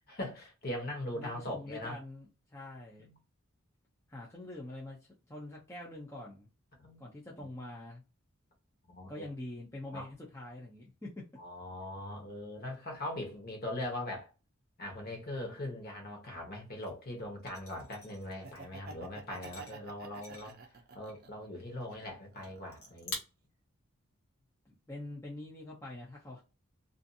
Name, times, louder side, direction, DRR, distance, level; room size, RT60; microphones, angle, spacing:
voice 1, 0.1-2.0 3.0-3.1 6.8-7.0 7.4-7.5 8.9-9.2 9.9-10.1 11.4-14.3 14.8-20.6 20.9-23.2, left 1 dB, 45° left, 1.0 m, -41 dB
voice 2, 1.1-3.2 4.1-5.0 5.3-6.5 7.0-8.0 9.1-11.1 24.7-26.4, left 1 dB, 10° left, 0.5 m, -45 dB
sound 1, 16.8-16.9 17.5-18.7 19.2-20.7 21.1-21.3 21.6-22.1 22.4-22.5 22.7-23.1, left 2 dB, 80° left, 1.1 m, -46 dB
Laughter, 18.3-21.5 21.9-23.0, right 4 dB, 45° right, 0.5 m, -50 dB
2.5 x 2.4 x 2.6 m
head